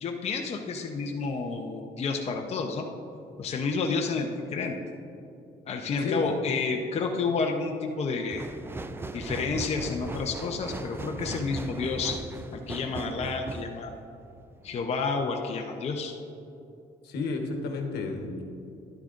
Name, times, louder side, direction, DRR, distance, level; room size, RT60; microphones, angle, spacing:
voice 1, 0.0-2.9 3.4-4.8 5.7-8.4 9.1-12.2 12.5-14.0 14.6-16.1, left 4 dB, 40° left, 2 dB, 0.7 m, -30 dB
voice 2, 6.0-6.3 17.0-18.4, left 3 dB, 75° left, 3 dB, 1.2 m, -31 dB
sound 1, 8.3-14.8 15.3-15.4, right 2 dB, 15° right, 0.4 m, -38 dB
11.5 x 9.7 x 2.5 m, 2.8 s
cardioid pair, 110°, 17 cm